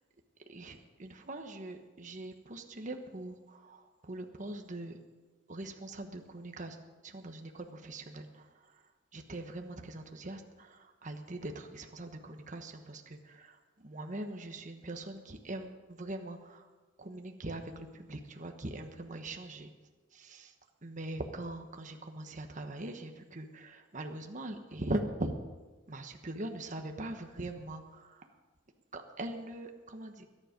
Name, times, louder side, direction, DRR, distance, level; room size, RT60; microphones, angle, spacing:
voice 1, 0.5-5.0 5.5-6.8 7.0-8.8 9.1-16.7 17.0-19.7 20.1-20.5 20.8-25.3 25.9-28.3 28.9-30.3, right 1 dB, 40° right, 5 dB, 1.2 m, -41 dB
21.5 x 9.9 x 5.2 m, 1.3 s
head